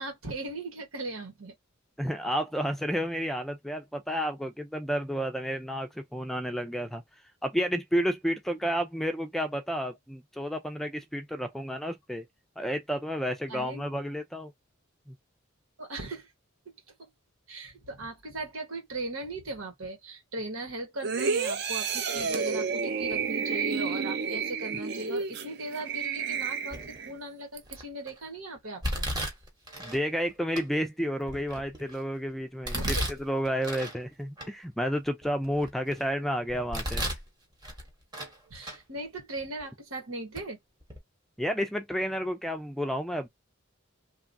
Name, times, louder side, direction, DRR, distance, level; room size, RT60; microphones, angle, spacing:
voice 1, 0.0-1.5 13.5-13.9 15.8-16.3 16.9-17.0 17.5-29.1 32.7-33.1 38.5-40.6, right 2 dB, 90° right, 1.3 m, -38 dB
voice 2, 2.0-7.0 7.4-12.2 12.6-14.5 15.1-15.2 29.8-32.8 33.2-37.0 41.4-43.3, equal, ahead, 0.4 m, -31 dB
sound 1, 21.0-27.1 27.6-27.7, right 5 dB, 50° right, 0.5 m, -31 dB
Domestic sounds home sounds, 26.7-27.1 27.7-28.1 28.8-30.0 30.6-30.7 31.2-32.0 32.6-34.0 34.4-34.5 35.1-36.0 36.5-37.3 37.6-38.4 38.6-38.8 39.6-39.7 40.3-40.5 40.8-41.0, equal, 20° right, 0.9 m, -34 dB
3.0 x 2.3 x 2.6 m
head